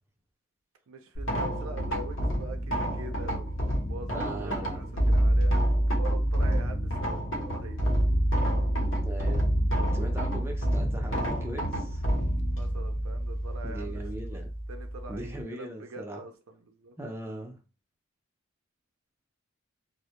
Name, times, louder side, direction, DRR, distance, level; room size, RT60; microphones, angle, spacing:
voice 1, 0.9-5.5 6.0-8.0 12.5-14.4 14.7-17.0, right 2 dB, 80° right, 0.4 m, -44 dB
sound 1, 1.1-15.4, equal, 65° left, 0.8 m, -28 dB
voice 2, 4.1-4.9 9.0-9.4 9.9-12.0 13.6-14.5 15.1-16.2 17.0-17.6, right 1 dB, 10° right, 0.4 m, -39 dB
2.2 x 2.0 x 2.8 m
head